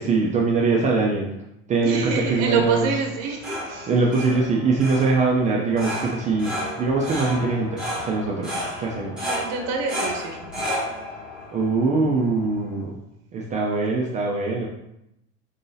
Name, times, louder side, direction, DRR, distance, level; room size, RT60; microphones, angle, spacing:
voice 1, 0.0-1.3 1.7-2.9 3.9-9.2 11.5-12.9 13.3-14.7, right 3 dB, 20° right, -3 dB, 0.4 m, -22 dB
voice 2, 1.8-3.9 9.2-10.4, right 5 dB, 50° right, 3 dB, 0.7 m, -26 dB
sound 1, 3.1-12.8, equal, ahead, 1.0 m, -32 dB
4.0 x 2.7 x 3.8 m, 0.83 s
supercardioid pair, 140°, 35 cm